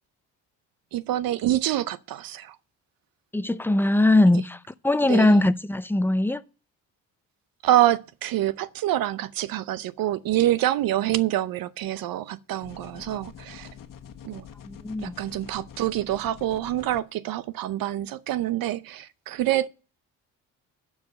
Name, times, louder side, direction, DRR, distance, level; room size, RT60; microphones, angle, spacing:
voice 1, 0.9-2.6 5.0-5.4 7.6-13.7 14.2-14.5 15.0-19.7, right 13 dB, 65° right, 0.6 m, -26 dB
voice 2, 3.3-6.4 14.6-15.2, left 2 dB, 5° left, 0.6 m, -21 dB
sound 1, 12.6-17.0, left 8 dB, 60° left, 1.3 m, -45 dB
12.0 x 4.8 x 6.7 m
supercardioid pair, 70°, 37 cm